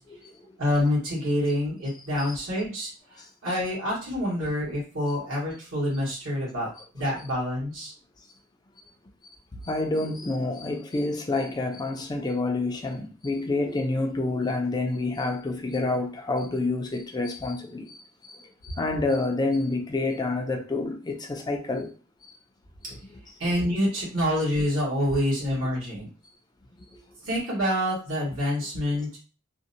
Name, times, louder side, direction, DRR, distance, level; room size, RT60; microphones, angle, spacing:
voice 1, 0.6-6.7 6.9-7.9 9.9-10.1 22.8-22.9 23.4-26.1 27.2-29.2, left 1 dB, 75° right, 1.1 m, -27 dB
voice 2, 9.6-21.9, left 2 dB, 20° left, 0.3 m, -28 dB
2.6 x 2.1 x 2.6 m
head